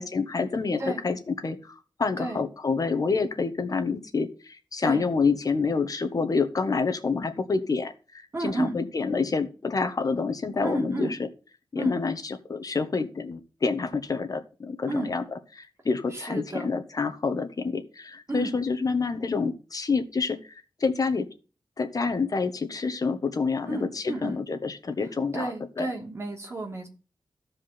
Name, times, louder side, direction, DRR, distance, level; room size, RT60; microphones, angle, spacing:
voice 1, 0.0-7.9 8.4-11.2 11.7-15.2 15.5-21.3 21.8-25.9, left 4 dB, 50° left, 8 dB, 1.4 m, -28 dB
voice 2, 8.3-8.7 10.6-11.1 11.8-11.9 14.9-15.1 16.1-16.7 18.3-18.6 23.7-24.4 25.3-26.9, right 2 dB, 35° right, 1 dB, 3.1 m, -32 dB
14.5 x 4.9 x 6.0 m, 0.35 s
wide cardioid pair, 125°, 8 cm